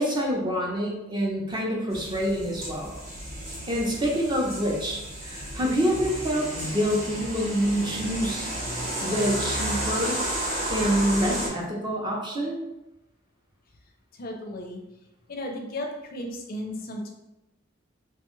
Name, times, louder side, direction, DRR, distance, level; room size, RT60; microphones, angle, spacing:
voice 1, 0.0-3.0 3.7-8.5 9.0-10.2 10.7-12.6, equal, 25° right, -2 dB, 0.6 m, -26 dB
sound 1, 1.9-11.5, right 1 dB, 50° right, 1.0 m, -32 dB
voice 2, 14.1-14.8 15.3-17.1, left 1 dB, 50° left, 2 dB, 0.4 m, -35 dB
3.2 x 2.2 x 3.0 m, 0.94 s
head